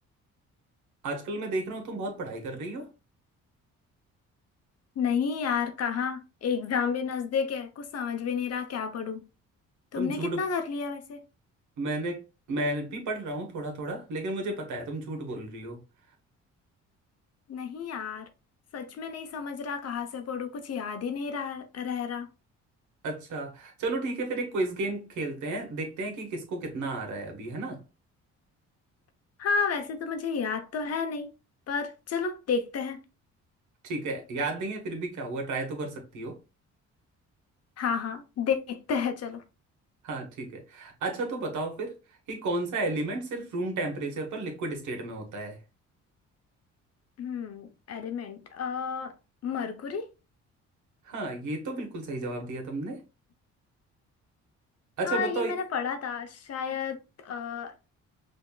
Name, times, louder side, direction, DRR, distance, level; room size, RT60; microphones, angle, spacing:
voice 1, 1.0-2.9 9.9-10.4 11.8-12.2 12.5-15.8 23.0-27.8 33.8-36.4 40.0-41.9 42.3-45.6 51.0-53.0 55.0-55.5, right 2 dB, 75° right, 1.4 m, -33 dB
voice 2, 5.0-9.2 9.9-11.2 17.5-18.3 18.7-22.3 29.4-31.3 31.7-33.0 37.8-39.4 47.2-49.1 49.4-50.1 55.0-57.9, left 6 dB, 55° left, 0.8 m, -31 dB
5.2 x 2.8 x 2.3 m
cardioid pair, 90°, 30 cm